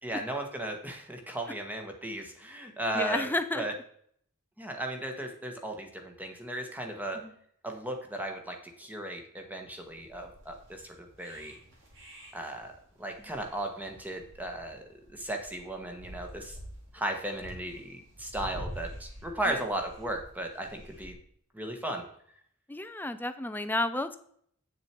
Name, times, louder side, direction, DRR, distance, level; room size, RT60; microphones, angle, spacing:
voice 1, 0.0-3.3 3.5-3.7 4.6-7.2 7.6-11.5 12.3-12.7 13.0-16.6 16.9-21.1 21.5-22.1, right 1 dB, 10° right, 3 dB, 1.5 m, -36 dB
voice 2, 2.9-3.6 7.2-7.3 19.5-19.6 22.7-24.2, left 2 dB, 10° left, 10 dB, 0.6 m, -31 dB
sound 1, 9.8-21.1, equal, 65° right, 3.8 m, -47 dB
8.8 x 6.8 x 4.5 m, 0.64 s
head